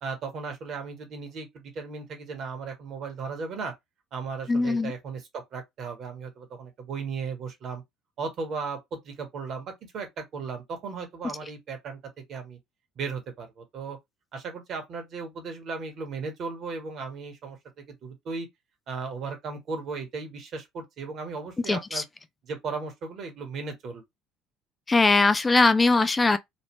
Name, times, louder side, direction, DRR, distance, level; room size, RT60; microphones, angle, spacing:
voice 1, 0.0-3.7 4.1-7.8 8.2-12.0 12.3-12.6 13.0-14.0 14.3-17.6 17.9-18.5 18.9-22.0 22.4-24.0, right 4 dB, 50° right, 1.4 m, -36 dB
voice 2, 4.5-4.9 21.7-22.0 24.9-26.4, left 3 dB, 20° left, 0.3 m, -21 dB
3.2 x 2.5 x 3.1 m
hypercardioid pair, 60°, 0 cm